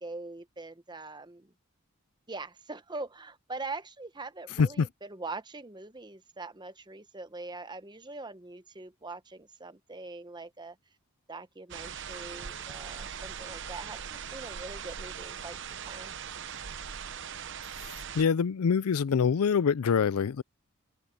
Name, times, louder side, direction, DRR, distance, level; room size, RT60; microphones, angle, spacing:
voice 1, 0.0-1.5 2.3-10.8 11.3-16.1, right 3 dB, 20° right, 0.8 m, -42 dB
sound 1, 11.7-18.2, right 7 dB, 55° right, 0.9 m, -40 dB
voice 2, 18.1-20.4, left 6 dB, 85° left, 0.4 m, -25 dB
head